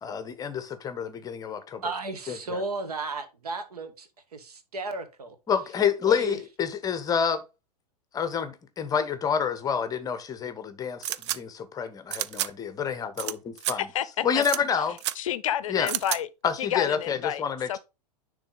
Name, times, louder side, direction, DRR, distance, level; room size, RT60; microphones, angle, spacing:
voice 1, 0.0-1.8 2.3-2.6 5.5-7.4 8.1-13.9 14.2-15.0 15.7-15.9 16.4-17.8, left 7 dB, 15° left, 0.8 m, -28 dB
voice 2, 1.8-5.3 6.0-6.4, right 3 dB, 65° right, 1.4 m, -34 dB
sound 1, 11.0-11.4 12.1-12.5 13.2-13.3 13.6-13.7 14.4-14.6 15.0-15.1 15.9-16.2, right 13 dB, 45° right, 0.4 m, -30 dB
voice 3, 13.9-14.4 15.2-16.3 16.6-17.4 17.7-17.8, left 11 dB, 55° left, 0.6 m, -29 dB
10.0 x 3.3 x 3.8 m
figure-of-eight pair, 95°, 21 cm